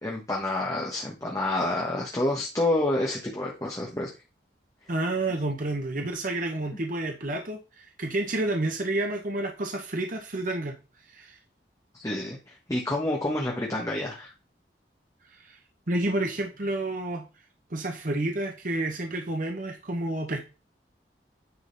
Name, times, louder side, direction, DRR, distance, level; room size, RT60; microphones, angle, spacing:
voice 1, 0.0-4.1 11.9-14.3, left 1 dB, 20° left, -2 dB, 1.4 m, -28 dB
voice 2, 4.9-10.8 11.1-11.4 15.3-15.6 15.9-17.3 17.7-20.4, right 2 dB, 50° right, 3 dB, 1.1 m, -30 dB
9.8 x 4.0 x 4.1 m, 0.29 s
head